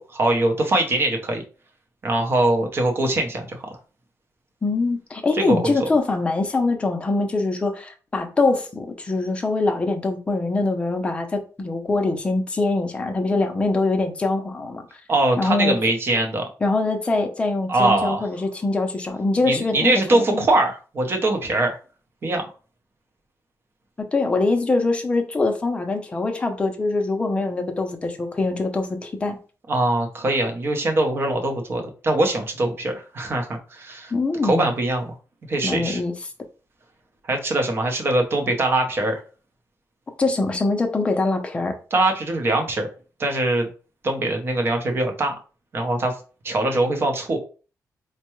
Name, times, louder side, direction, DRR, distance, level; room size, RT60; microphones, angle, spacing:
voice 1, 0.0-1.4 2.0-3.8 5.3-5.9 15.1-16.4 17.7-18.3 19.4-21.8 22.2-22.4 29.7-34.1 34.4-35.1 35.5-36.0 37.3-39.2 41.9-42.9 43.2-43.7 44.0-45.3 45.7-46.1 46.4-47.4, right 2 dB, 40° right, 0.7 m, -22 dB
voice 2, 4.6-14.8 15.4-15.8 16.6-20.5 24.1-29.4 34.1-34.7 35.6-36.1 40.2-41.8, left 3 dB, 20° left, 0.5 m, -23 dB
4.4 x 2.2 x 3.0 m
wide cardioid pair, 180°, 6 cm